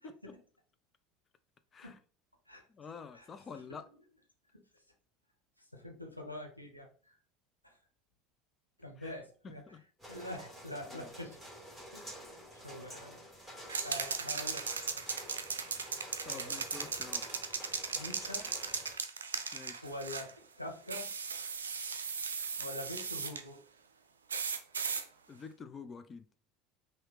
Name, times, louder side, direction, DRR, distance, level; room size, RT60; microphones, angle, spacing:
voice 1, 0.0-0.4 1.8-2.0 2.5-2.7 3.1-3.6 4.5-4.8 5.6-7.2 7.6-7.8 8.8-9.8 10.1-11.4 11.9-13.2 13.8-15.0 16.2-16.8 17.9-18.5 19.8-20.3 20.6-21.1 22.6-23.6, left 1 dB, 90° left, 1.0 m, -45 dB
voice 2, 2.7-3.9 9.0-9.1 9.4-9.8 10.9-11.1 16.2-17.3 19.5-19.8 25.3-26.2, left 5 dB, 30° left, 0.5 m, -48 dB
sound 1, 10.0-18.9, equal, 5° left, 2.3 m, -50 dB
sound 2, 13.7-20.3 20.9-23.4 24.3-25.0, right 5 dB, 75° right, 0.5 m, -37 dB
5.5 x 2.7 x 3.4 m
figure-of-eight pair, 70°, 0 cm